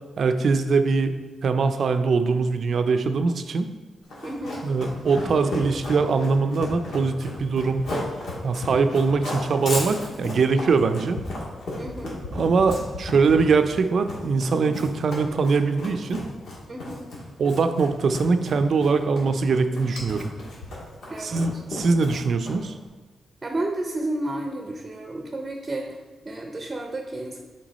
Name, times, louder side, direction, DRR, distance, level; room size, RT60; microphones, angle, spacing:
voice 1, 0.2-1.1 1.4-3.7 4.6-7.9 8.4-11.2 12.3-16.2 17.4-20.2 21.2-22.7, right 4 dB, 60° right, 9 dB, 0.5 m, -22 dB
Run, 4.1-22.8, left 1 dB, 80° left, 2.0 m, -34 dB
voice 2, 4.2-4.6 8.7-9.0 11.8-12.2 16.7-17.1 21.1-21.5 23.4-27.4, right 1 dB, 25° right, 2 dB, 0.7 m, -32 dB
6.1 x 4.5 x 4.1 m, 1.3 s
cardioid pair, 85°, 0 cm